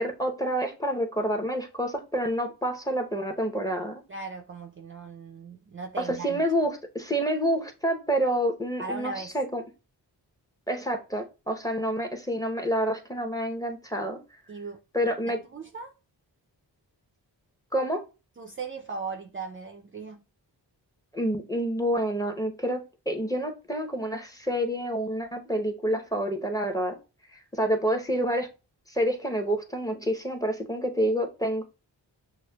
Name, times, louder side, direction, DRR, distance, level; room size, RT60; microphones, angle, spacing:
voice 1, 0.0-4.0 6.0-9.6 10.7-14.2 14.9-15.4 17.7-18.0 21.1-22.8 23.1-26.9 27.3-28.5 28.9-31.6, equal, 10° left, 0.8 m, -28 dB
voice 2, 4.1-6.4 8.8-9.3 14.5-14.8 15.3-15.9 18.4-20.2, right 4 dB, 30° right, 0.4 m, -38 dB
6.2 x 2.1 x 2.3 m
cardioid pair, 45°, 44 cm